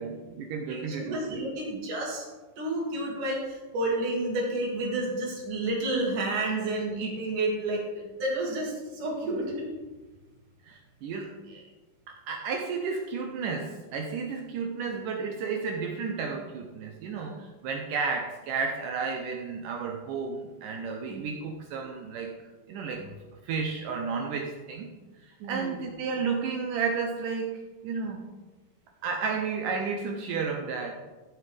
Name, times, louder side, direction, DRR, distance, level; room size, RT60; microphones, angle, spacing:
voice 1, 0.0-1.4 10.6-11.7 12.1-22.4 22.7-23.1 23.4-25.0 25.4-28.3 29.0-30.9, right 5 dB, 75° right, 2 dB, 2.1 m, -32 dB
voice 2, 0.7-2.2 2.6-9.7 21.1-21.2 25.4-25.8, right 2 dB, 60° right, -3 dB, 3.8 m, -30 dB
14.5 x 7.7 x 3.4 m, 1.2 s
omnidirectional pair, 4.4 m